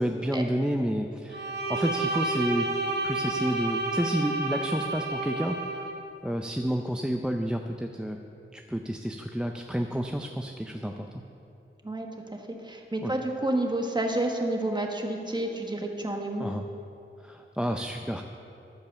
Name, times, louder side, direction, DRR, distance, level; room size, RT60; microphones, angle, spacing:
voice 1, 0.0-2.7 3.0-5.9 6.2-8.2 8.5-11.1 13.0-13.1 16.4-16.6 17.2-18.2, equal, 5° right, 4 dB, 0.5 m, -30 dB
Bowed string instrument, 1.3-6.0, right 2 dB, 55° right, 1.6 m, -30 dB
voice 2, 12.3-16.4, right 1 dB, 20° right, 2 dB, 1.4 m, -29 dB
14.0 x 5.4 x 6.8 m, 2.7 s
cardioid pair, 60°, 21 cm